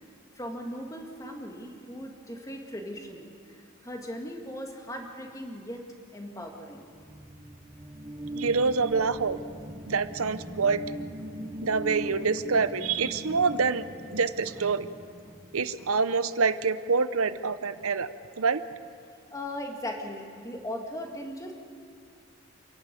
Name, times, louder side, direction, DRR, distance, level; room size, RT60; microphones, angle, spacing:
voice 1, 0.4-5.9 6.1-6.9 19.3-21.5, left 1 dB, 15° left, 2 dB, 2.0 m, -38 dB
sound 1, 6.8-16.0, right 1 dB, 20° right, 0.9 m, -40 dB
voice 2, 8.4-9.4 9.9-10.8 11.6-13.8 14.1-14.9 15.5-18.1 18.4-18.6, right 4 dB, 75° right, 13 dB, 0.8 m, -26 dB
28.0 x 11.5 x 8.4 m, 2.3 s
head